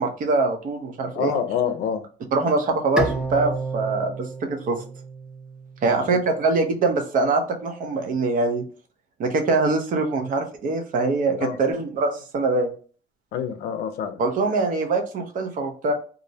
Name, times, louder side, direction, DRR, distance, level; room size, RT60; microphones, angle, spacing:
voice 1, 0.0-1.3 2.3-4.8 5.8-8.6 9.2-12.7 14.2-15.9, right 3 dB, 50° right, 5 dB, 0.7 m, -23 dB
voice 2, 1.1-2.1 2.4-2.5 5.9-6.2 11.4-11.6 13.3-14.2, left 8 dB, 70° left, 8 dB, 0.5 m, -27 dB
Bowed string instrument, 3.0-6.2, right 3 dB, 5° right, 0.5 m, -31 dB
2.5 x 2.0 x 2.7 m, 0.41 s
cardioid pair, 110°, 17 cm